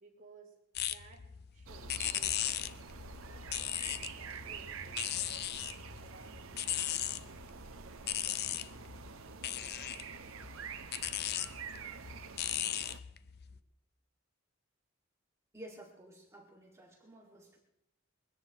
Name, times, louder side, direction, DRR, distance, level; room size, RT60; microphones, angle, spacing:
voice 1, 0.0-2.8 3.1-6.8 7.1-10.8 13.5-13.6, right 3 dB, 40° right, -4 dB, 4.4 m, -61 dB
sound 1, 0.8-13.6, left 11 dB, 50° left, 0.5 m, -38 dB
sound 2, 1.7-13.0, right 6 dB, 75° right, 0.9 m, -47 dB
voice 2, 15.5-17.6, right 1 dB, 15° right, -2 dB, 2.0 m, -52 dB
23.0 x 17.0 x 3.0 m, 0.87 s
head